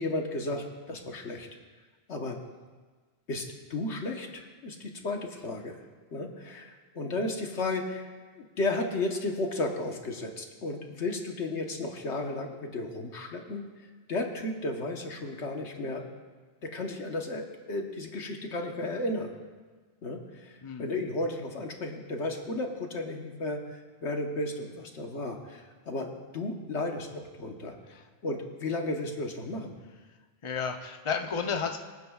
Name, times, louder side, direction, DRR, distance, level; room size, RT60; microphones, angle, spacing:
voice 1, 0.0-1.5 2.1-2.4 3.3-3.4 3.7-5.8 6.1-8.1 8.3-16.0 16.6-19.3 20.0-29.7, left 2 dB, 85° left, 2 dB, 1.5 m, -34 dB
voice 2, 20.6-20.9 27.9-28.0 30.4-31.8, left 6 dB, 30° left, 4 dB, 0.7 m, -32 dB
24.5 x 9.3 x 2.4 m, 1.4 s
omnidirectional pair, 1.1 m